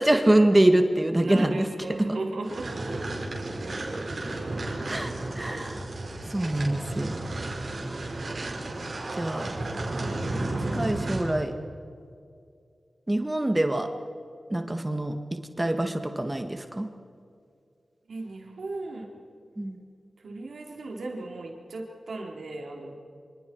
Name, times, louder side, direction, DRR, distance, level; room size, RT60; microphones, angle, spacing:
voice 1, 0.0-1.7 4.9-5.8 6.3-7.2 9.2-9.5 10.7-11.5 13.1-13.9 14.5-15.1 15.6-16.9 19.6-19.8, right 1 dB, 20° right, 6 dB, 1.7 m, -24 dB
voice 2, 1.2-3.2 4.0-4.4 18.1-19.1 20.2-23.0, right 2 dB, 85° right, 0 dB, 3.9 m, -37 dB
sound 1, 2.4-11.4, right 2 dB, 60° right, 5.3 m, -33 dB
27.0 x 26.5 x 4.7 m, 2.4 s
cardioid pair, 45°, 0 cm